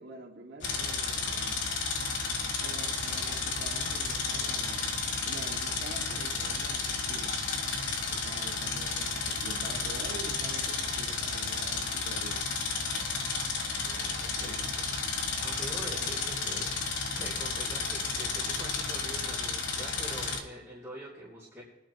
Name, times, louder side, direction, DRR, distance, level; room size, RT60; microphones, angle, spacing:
voice 1, 0.0-1.6 2.6-5.0 5.2-7.4 8.1-12.4 14.4-15.1 16.0-16.2, right 2 dB, 85° right, 0 dB, 2.6 m, -46 dB
sound 1, 0.6-20.4, left 4 dB, 75° left, 1.5 m, -32 dB
voice 2, 13.8-14.9 15.4-16.8 17.1-21.6, equal, 10° right, -10 dB, 3.9 m, -45 dB
25.0 x 10.5 x 2.2 m, 0.91 s
head